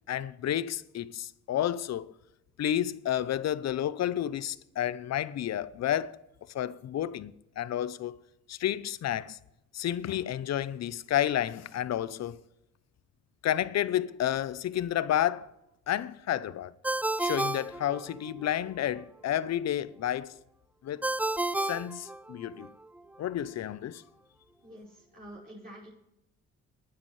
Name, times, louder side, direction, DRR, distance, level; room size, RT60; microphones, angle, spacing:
voice 1, 0.1-2.1 2.6-6.2 6.5-8.2 8.5-9.4 9.7-12.4 13.4-15.5 15.9-16.7 17.2-20.3 20.8-21.0 21.7-22.7 23.2-24.0, left 11 dB, 60° left, 0.7 m, -31 dB
Ringtone, 16.8-18.5 21.0-22.7, right 2 dB, 5° right, 0.4 m, -31 dB
voice 2, 24.6-25.9, equal, 30° right, 5.5 m, -47 dB
19.0 x 9.8 x 3.2 m
cardioid pair, 90°, 30 cm